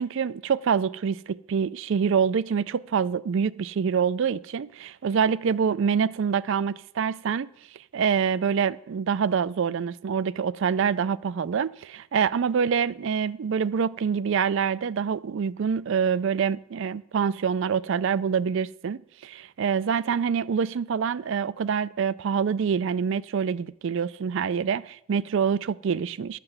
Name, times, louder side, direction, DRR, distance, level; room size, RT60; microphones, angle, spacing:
voice 1, 0.0-7.5 7.9-26.4, right 6 dB, 60° right, 0.3 m, -26 dB
12.5 x 5.9 x 7.9 m
head